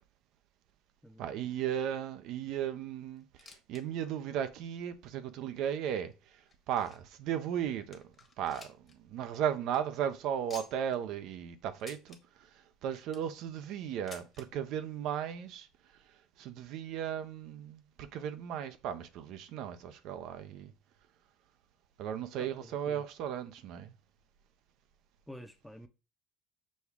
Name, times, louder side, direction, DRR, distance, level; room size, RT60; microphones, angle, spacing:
voice 1, 1.2-6.1 6.7-8.0 8.4-8.8 9.1-12.2 12.8-15.7 16.4-20.7 22.0-23.9, right 9 dB, 60° right, 0.5 m, -36 dB
sound 1, 3.2-3.8 4.1-4.2 4.9-5.0 5.7-7.2 7.6-7.7 7.9-9.0 9.3-9.4 9.6-9.8 10.5-11.0 11.8-12.2 12.8-13.3 14.1-14.5 15.4-15.5 15.7-15.8 16.6-16.7, left 5 dB, 30° left, 1.1 m, -52 dB
voice 2, 22.4-23.0 25.3-25.9, equal, ahead, 0.6 m, -49 dB
6.2 x 2.3 x 3.5 m
supercardioid pair, 95°, 0 cm